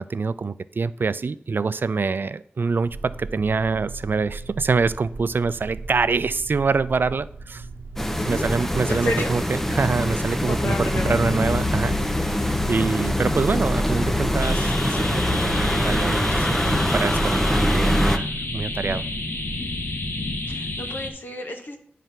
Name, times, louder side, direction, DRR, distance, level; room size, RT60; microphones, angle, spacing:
voice 1, 0.0-7.7 8.3-18.3 18.5-19.0, right 4 dB, 65° right, 16 dB, 0.4 m, -25 dB
sound 1, 2.8-19.8, right 3 dB, 85° right, 0.8 m, -38 dB
sound 2, 8.0-18.2, left 1 dB, 10° left, 0.6 m, -23 dB
voice 2, 8.9-9.5 10.5-11.2 20.5-21.8, left 1 dB, 60° left, 3 dB, 1.1 m, -31 dB
sound 3, 14.4-21.1, left 2 dB, 85° left, 1.2 m, -30 dB
9.2 x 3.3 x 5.8 m, 0.64 s
wide cardioid pair, 75°, 4 cm